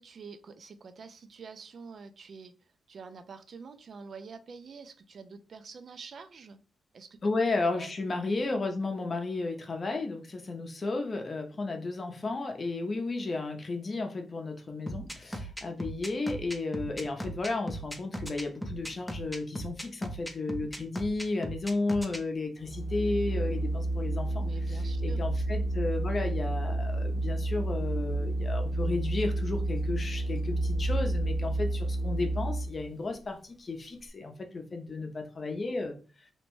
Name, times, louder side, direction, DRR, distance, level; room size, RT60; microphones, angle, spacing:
voice 1, 0.0-2.5 2.9-6.6 6.9-7.2 7.7-7.9 24.4-25.3, right 5 dB, 60° right, 10 dB, 0.3 m, -46 dB
voice 2, 7.2-36.0, left 3 dB, 45° left, 4 dB, 0.6 m, -33 dB
sound 1, 14.9-22.2, right 1 dB, ahead, 0.5 m, -37 dB
Organ, 22.6-32.9, right 1 dB, 15° left, 0.9 m, -30 dB
2.8 x 2.1 x 3.0 m, 0.36 s
cardioid pair, 70°, 0 cm